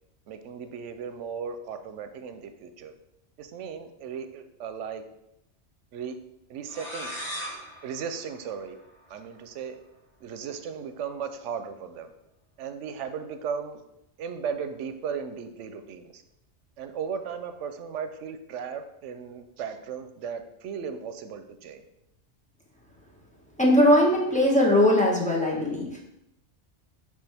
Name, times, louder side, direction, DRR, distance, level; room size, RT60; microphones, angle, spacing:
voice 1, 0.3-2.9 3.4-5.0 5.9-6.2 6.5-7.1 7.8-8.8 9.1-9.8 10.2-12.1 12.6-13.8 14.2-16.2 16.8-21.9, right 6 dB, 90° right, 8 dB, 0.9 m, -36 dB
sound 1, 6.6-9.3, equal, 50° left, 1.8 m, -39 dB
voice 2, 23.6-26.0, left 1 dB, 5° left, -3 dB, 1.1 m, -20 dB
9.9 x 3.3 x 3.4 m, 0.86 s
omnidirectional pair, 1.2 m